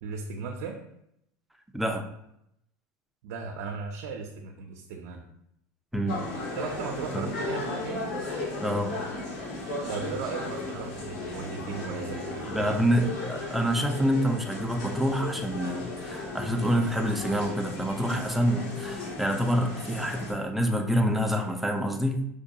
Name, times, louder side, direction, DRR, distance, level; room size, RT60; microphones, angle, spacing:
voice 1, 0.0-0.8 3.2-5.3 6.6-8.0 9.9-13.1, right 5 dB, 80° right, 1 dB, 0.4 m, -36 dB
voice 2, 1.7-2.1 5.9-6.2 7.1-7.3 8.6-8.9 12.5-22.3, equal, ahead, 4 dB, 0.3 m, -27 dB
sound 1, 6.1-20.3, left 2 dB, 65° left, 1.2 m, -36 dB
4.7 x 2.2 x 2.7 m, 0.78 s
supercardioid pair, 125°, 8 cm